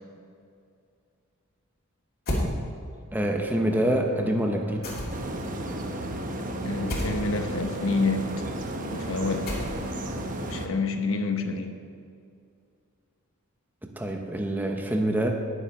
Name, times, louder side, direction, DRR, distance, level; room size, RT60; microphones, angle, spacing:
sound 1, 2.3-2.5 4.8-5.4 6.9-7.2 9.5-10.0, left 1 dB, 45° left, 2.7 m, -29 dB
voice 1, 3.1-4.9 13.8-15.3, right 1 dB, 10° right, 2 dB, 0.7 m, -26 dB
sound 2, 3.5-10.8, equal, 75° right, 1.5 m, -41 dB
sound 3, 5.1-10.7, right 1 dB, 35° right, 0.8 m, -34 dB
voice 2, 6.6-8.4 8.9-9.6 10.4-11.8, left 3 dB, 60° left, 6 dB, 1.0 m, -28 dB
19.5 x 7.0 x 4.3 m, 2.4 s
head